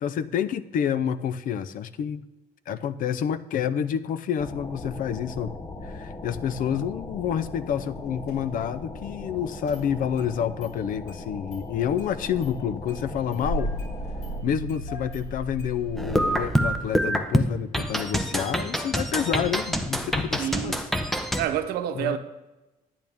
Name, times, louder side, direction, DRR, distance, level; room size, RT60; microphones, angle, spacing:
voice 1, 0.0-2.2 2.7-5.5 5.8-13.7 14.4-21.4 21.9-22.2, left 8 dB, 60° left, 0.5 m, -29 dB
sound 1, 4.4-14.4, left 2 dB, 25° left, 1.0 m, -39 dB
Engine starting, 8.3-8.4 9.7-10.3 10.6-10.7 11.1-11.2 11.5-11.6 12.0-12.5 12.8-16.8, right 1 dB, 75° left, 4.2 m, -35 dB
sound 2, 16.0-21.5, equal, ahead, 0.7 m, -26 dB
voice 2, 20.4-20.8 21.4-22.2, right 10 dB, 85° right, 0.8 m, -28 dB
10.5 x 10.5 x 3.5 m
cardioid pair, 125°, 16 cm